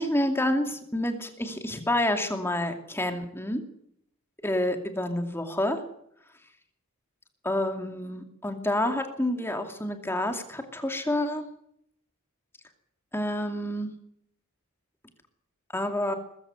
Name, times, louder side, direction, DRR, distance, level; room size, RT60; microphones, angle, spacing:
voice 1, 0.0-3.6 4.4-5.8 7.4-11.4 13.1-13.9 15.7-16.1, left 1 dB, 10° left, 5 dB, 2.5 m, -28 dB
21.0 x 15.0 x 9.6 m, 0.72 s
head